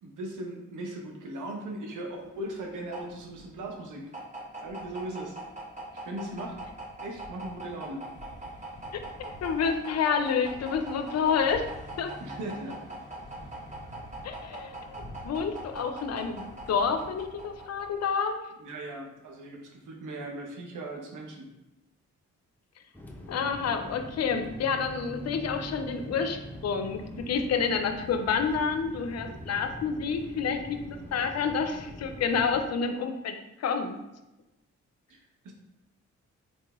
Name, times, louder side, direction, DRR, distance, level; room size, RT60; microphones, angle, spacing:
voice 1, 0.0-4.1 4.6-5.3 5.9-6.6 7.0-8.0 12.2-12.8 18.6-21.5 35.1-35.2 35.4-35.5, right 1 dB, 75° right, 1 dB, 0.8 m, -38 dB
sound 1, 2.2-18.2, right 1 dB, 25° right, 1.1 m, -42 dB
voice 2, 8.9-12.1 14.2-18.4 23.3-33.3 33.6-34.0, left 6 dB, 55° left, 7 dB, 0.5 m, -29 dB
sound 2, 22.9-32.6, equal, 5° left, 0.6 m, -43 dB
4.1 x 2.9 x 2.3 m, 0.95 s
supercardioid pair, 50°, 31 cm